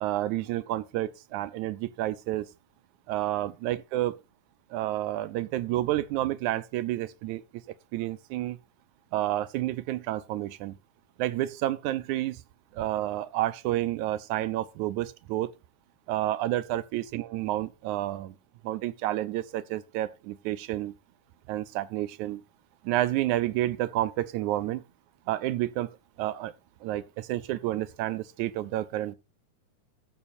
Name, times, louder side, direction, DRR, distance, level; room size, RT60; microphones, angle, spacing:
voice 1, 0.0-2.5 3.1-4.2 4.7-7.4 7.9-8.6 9.1-10.8 11.2-12.4 12.7-15.5 16.1-18.4 18.6-20.9 21.5-22.4 22.8-24.8 25.3-25.9 26.2-26.5 26.8-29.1, right 14 dB, 80° right, 2.1 m, -30 dB
14.5 x 5.8 x 4.3 m
omnidirectional pair, 3.5 m